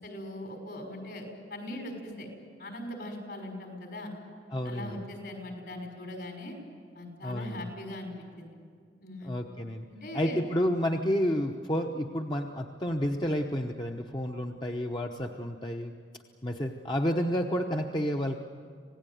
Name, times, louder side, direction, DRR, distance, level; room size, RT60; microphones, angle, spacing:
voice 1, 0.0-2.3 2.6-4.1 4.6-6.6 6.9-8.6 9.0-9.3 9.9-10.4, left 1 dB, 65° left, 2 dB, 6.0 m, -40 dB
voice 2, 4.5-5.0 7.2-7.7 9.2-9.8 10.1-15.9 16.4-18.4, equal, 25° left, 2 dB, 1.0 m, -30 dB
27.0 x 18.5 x 9.3 m, 2.1 s
head